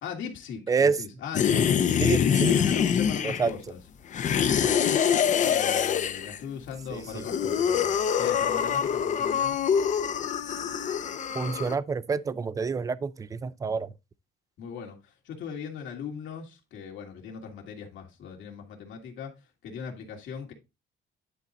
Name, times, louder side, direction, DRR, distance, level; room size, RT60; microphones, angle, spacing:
voice 1, 0.0-3.8 4.2-9.6 14.6-20.5, left 7 dB, 75° left, 2.1 m, -38 dB
voice 2, 0.7-1.0 2.0-2.6 3.2-3.5 6.9-7.2 11.3-13.9, right 5 dB, 15° right, 0.3 m, -27 dB
sound 1, 1.3-3.6 4.1-6.4 7.0-11.7, left 8 dB, 40° left, 0.6 m, -25 dB
10.0 x 3.9 x 4.1 m
cardioid pair, 165°, 20 cm